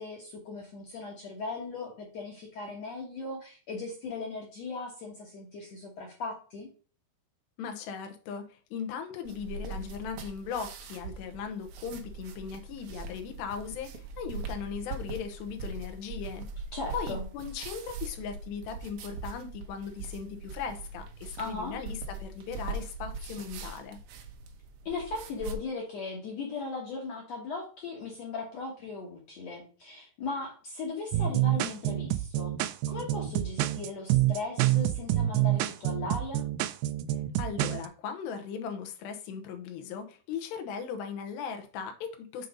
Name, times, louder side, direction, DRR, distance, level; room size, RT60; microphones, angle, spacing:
voice 1, 0.0-6.7 16.7-17.3 21.4-21.8 24.9-32.6 32.9-36.4, left 3 dB, 65° left, 0 dB, 1.7 m, -38 dB
voice 2, 7.6-16.5 16.9-24.0 37.4-42.5, left 6 dB, 85° left, 6 dB, 3.2 m, -38 dB
sound 1, 9.3-25.6, right 3 dB, 70° right, 1.9 m, -41 dB
sound 2, 31.1-37.9, right 14 dB, 90° right, 2.1 m, -27 dB
7.5 x 4.0 x 5.1 m, 0.38 s
omnidirectional pair, 4.7 m